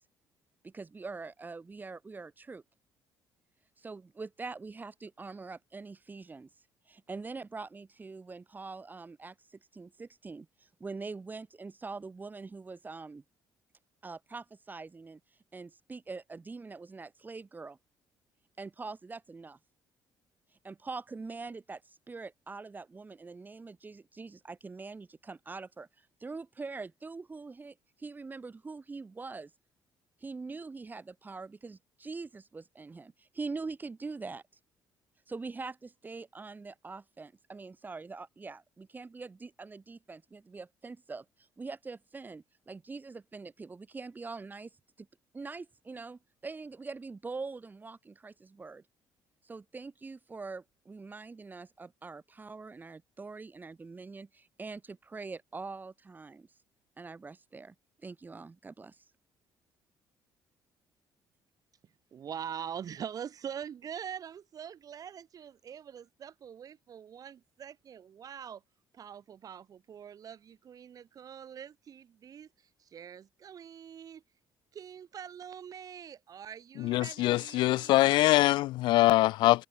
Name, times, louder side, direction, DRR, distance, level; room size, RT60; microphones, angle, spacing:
voice 1, 0.6-2.6 3.8-6.5 6.9-13.2 14.0-15.2 15.5-17.8 18.6-19.6 20.6-29.5 30.2-34.4 35.3-45.1 45.3-48.8 49.4-56.5 57.0-57.7 58.0-59.1, right 4 dB, 20° right, 4.4 m, -43 dB
voice 2, 62.1-68.6 68.9-74.2 74.7-78.0, right 8 dB, 50° right, 7.8 m, -44 dB
voice 3, 76.8-79.7, left 17 dB, 80° left, 0.3 m, -23 dB
cardioid pair, 110°, 8 cm